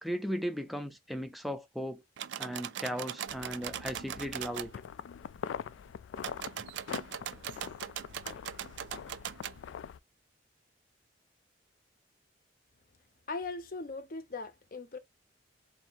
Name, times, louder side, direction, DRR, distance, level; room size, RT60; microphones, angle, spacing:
voice 1, 0.0-2.0 2.4-4.7, equal, ahead, 0.4 m, -36 dB
sound 1, 2.2-4.7 6.2-9.6, right 9 dB, 70° right, 0.4 m, -40 dB
sound 2, 3.3-10.0, left 7 dB, 85° left, 0.3 m, -43 dB
voice 2, 13.3-15.0, left 3 dB, 50° left, 0.6 m, -39 dB
3.3 x 2.7 x 4.4 m
head